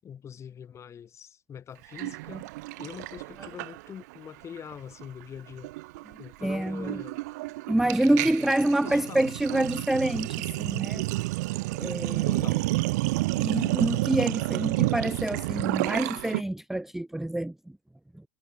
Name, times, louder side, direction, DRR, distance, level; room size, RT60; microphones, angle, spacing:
voice 1, 0.0-2.5 2.8-5.7 6.2-7.2 7.9-9.5 12.2-12.7 14.7-14.9, left 8 dB, 30° left, 7.0 m, -44 dB
Sink (filling or washing), 2.0-4.2 4.4-4.7 5.0-16.4, right 21 dB, 80° right, 1.8 m, -30 dB
voice 2, 6.4-7.0 7.7-11.0 11.8-12.5 13.4-17.5, right 1 dB, 5° right, 0.3 m, -27 dB
supercardioid pair, 115°, 9 cm